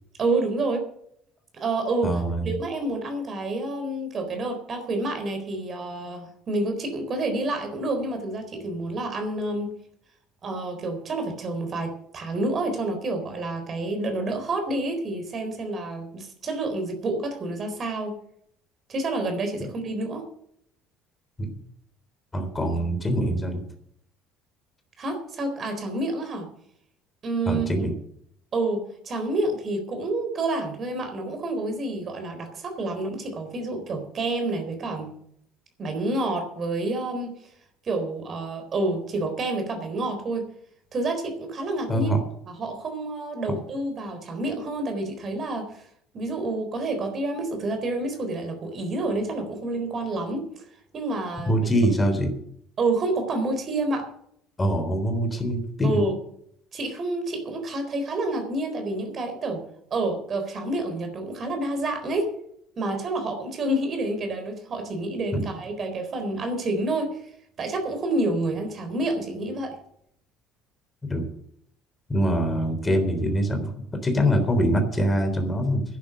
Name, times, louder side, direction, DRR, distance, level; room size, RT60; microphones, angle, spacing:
voice 1, 0.2-0.9 1.5-2.1 2.4-9.7 10.4-18.2 18.9-20.3 25.0-26.5 27.2-27.9 28.5-35.1 35.8-37.3 37.8-40.5 40.9-42.1 42.5-45.8 46.1-50.5 50.9-51.6 52.8-54.1 55.8-56.2 56.7-59.6 59.9-62.3 62.8-67.2 67.6-69.8, right 2 dB, 40° right, 6 dB, 4.0 m, -28 dB
voice 2, 2.0-2.6 21.4-21.5 22.3-23.6 27.5-27.9 41.9-42.2 51.5-52.3 54.6-56.0 65.3-65.4 71.0-71.3 72.1-75.8, equal, 20° left, 7 dB, 3.6 m, -24 dB
11.0 x 9.9 x 7.8 m, 0.69 s
figure-of-eight pair, 55°, 0 cm